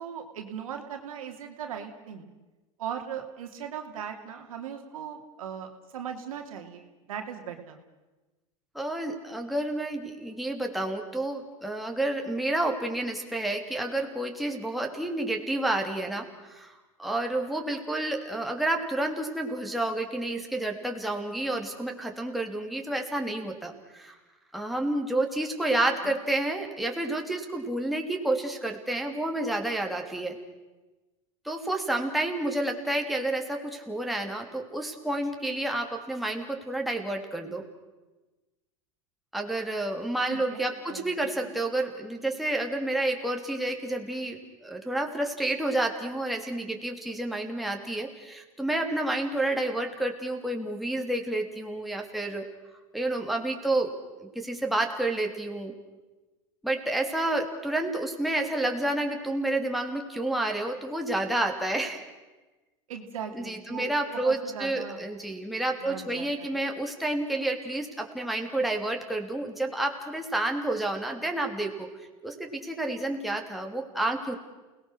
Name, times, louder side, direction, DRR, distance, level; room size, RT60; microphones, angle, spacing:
voice 1, 0.0-2.3 2.8-7.8 26.0-26.2 40.3-41.1 41.4-41.6 62.9-63.9 64.2-65.0 65.8-66.6, right 8 dB, 85° right, 4 dB, 2.6 m, -39 dB
voice 2, 8.7-24.2 24.5-30.4 31.4-37.6 39.3-52.5 52.9-53.9 54.2-55.7 56.6-62.0 63.3-71.9 72.2-74.4, right 1 dB, ahead, 1 dB, 2.9 m, -30 dB
29.0 x 19.0 x 6.4 m, 1.2 s
hypercardioid pair, 100°, 17 cm